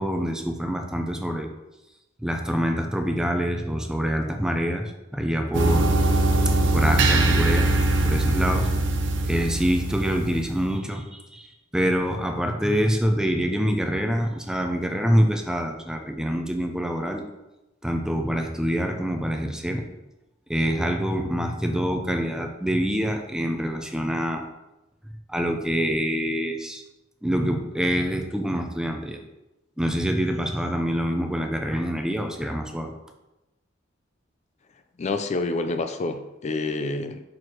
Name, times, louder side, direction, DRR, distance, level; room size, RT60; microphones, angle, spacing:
voice 1, 0.0-1.5 2.2-5.9 6.5-7.7 8.0-8.7 9.2-11.5 11.7-17.2 17.8-19.9 20.5-24.5 25.3-26.8 27.2-29.2 29.8-32.9, equal, 5° right, 4 dB, 0.6 m, -25 dB
sound 1, 5.5-10.7, right 2 dB, 70° right, 0.7 m, -22 dB
voice 2, 35.0-37.2, left 3 dB, 35° left, 8 dB, 0.4 m, -28 dB
6.3 x 4.5 x 4.5 m, 0.97 s
head